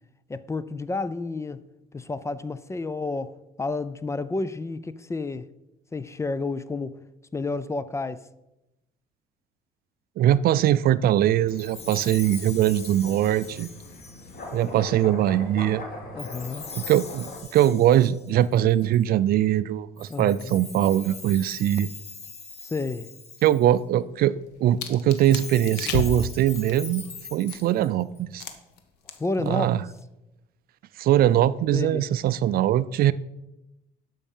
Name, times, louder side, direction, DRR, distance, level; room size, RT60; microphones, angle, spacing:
voice 1, 0.3-1.6 1.9-5.5 5.9-7.0 7.3-8.3 16.1-16.7 20.1-20.6 22.6-23.1 29.2-29.7 31.7-32.0, left 3 dB, 15° left, 0.4 m, -30 dB
voice 2, 10.2-13.7 14.5-15.8 16.7-21.9 23.4-27.0 27.3-28.4 29.5-29.8 31.0-33.1, right 12 dB, 60° right, 0.4 m, -22 dB
sound 1, 11.2-17.4, left 2 dB, 60° left, 2.6 m, -41 dB
Chime, 11.5-14.8 16.2-19.0 20.0-23.8 25.0-28.2, left 5 dB, 40° left, 1.3 m, -42 dB
sound 2, 24.2-27.8 28.4-28.8 29.1-29.5 29.7-30.0, left 5 dB, 85° left, 1.1 m, -33 dB
12.0 x 5.5 x 5.5 m
cardioid pair, 110°, 17 cm